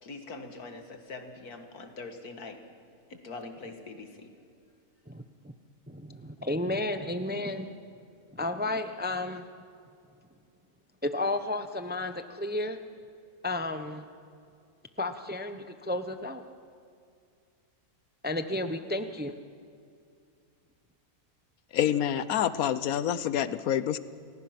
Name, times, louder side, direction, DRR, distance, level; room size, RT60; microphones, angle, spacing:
voice 1, 0.0-2.6 3.1-4.3, left 3 dB, 90° left, 5 dB, 2.3 m, -43 dB
voice 2, 5.9-7.7 8.3-9.4 11.0-12.8 13.4-14.0 15.0-16.4 18.2-19.4, left 2 dB, 10° right, 8 dB, 0.5 m, -32 dB
voice 3, 21.7-24.0, left 10 dB, 75° left, 15 dB, 1.2 m, -27 dB
28.5 x 20.0 x 5.9 m, 2.4 s
omnidirectional pair, 1.6 m